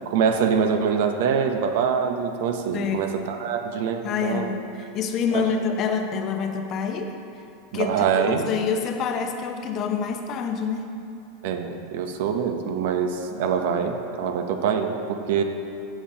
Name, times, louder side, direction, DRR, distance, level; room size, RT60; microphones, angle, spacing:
voice 1, 0.1-4.5 5.3-5.4 7.7-8.5 11.4-15.4, right 6 dB, 70° right, 6 dB, 0.7 m, -24 dB
voice 2, 2.7-3.2 4.0-7.2 7.7-10.8 13.3-13.5, left 6 dB, 45° left, 5 dB, 0.7 m, -27 dB
13.0 x 6.9 x 2.8 m, 2.6 s
hypercardioid pair, 110°, 0 cm